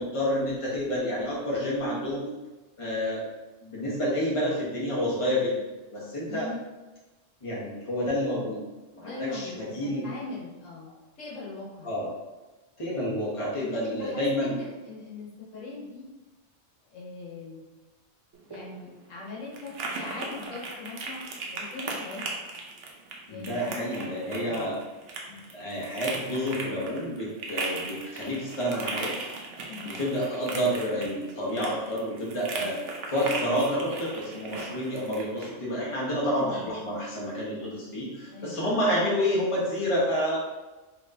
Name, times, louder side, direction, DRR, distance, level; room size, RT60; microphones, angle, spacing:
voice 1, 0.0-2.3 2.8-3.2 3.6-5.5 5.9-6.5 7.4-8.6 8.9-10.1 11.8-12.1 12.8-14.6 23.3-24.8 25.3-29.1 29.8-32.8 33.1-40.4, equal, 25° left, -6 dB, 1.0 m, -29 dB
voice 2, 6.3-6.6 9.0-11.9 13.6-16.1 16.9-17.6 18.5-22.3 23.3-24.7 29.7-30.0 32.5-32.7 36.4-36.8 37.6-37.7 38.3-38.7, left 3 dB, 80° left, -4 dB, 1.3 m, -41 dB
sound 1, 18.3-35.5, right 3 dB, 70° right, 1.0 m, -38 dB
4.4 x 2.9 x 2.7 m, 1.1 s
omnidirectional pair, 1.3 m